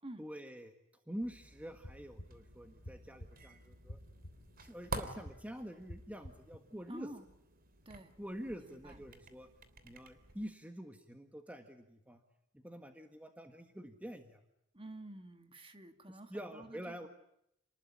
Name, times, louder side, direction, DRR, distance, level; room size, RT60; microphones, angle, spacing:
voice 1, 0.2-0.8 1.1-4.0 4.6-7.1 8.2-9.5 9.8-12.2 12.5-14.4 16.1-17.1, equal, 5° right, 6 dB, 1.7 m, -46 dB
sound 1, 1.2-10.5, right 3 dB, 45° right, 3.2 m, -49 dB
sound 2, 1.6-6.6, equal, 60° left, 3.2 m, -52 dB
voice 2, 6.9-7.3 7.9-8.2 8.5-9.0 14.7-17.1, right 1 dB, 25° right, 7 dB, 2.4 m, -50 dB
29.0 x 20.0 x 9.8 m, 0.79 s
head